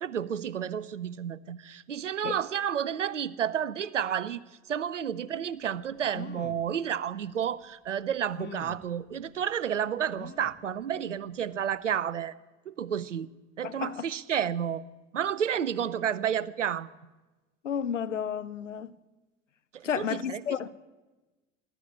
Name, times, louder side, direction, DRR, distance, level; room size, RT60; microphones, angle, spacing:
voice 1, 0.0-4.4 4.7-12.4 12.7-13.3 13.6-14.9 15.1-16.9 19.7-20.4, right 8 dB, 90° right, 0.5 m, -31 dB
sound 1, 5.7-5.8 6.1-6.7 7.4-7.5 8.4-8.9 10.2-10.7 11.2-11.3 11.6-11.7, left 7 dB, 30° left, 0.9 m, -44 dB
voice 2, 13.6-14.1 17.6-19.0 19.8-20.7, left 8 dB, 90° left, 0.5 m, -32 dB
13.5 x 12.0 x 8.5 m
figure-of-eight pair, 55°, 36 cm